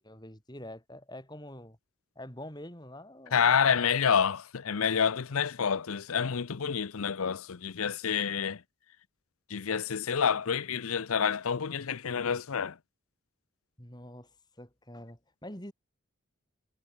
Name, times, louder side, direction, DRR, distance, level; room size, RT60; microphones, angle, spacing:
voice 1, 0.0-1.8 2.1-3.7 13.8-14.3 14.6-15.7, left 1 dB, 20° left, 4.8 m, -45 dB
voice 2, 3.3-8.6 9.5-12.8, left 7 dB, 80° left, 0.6 m, -28 dB
head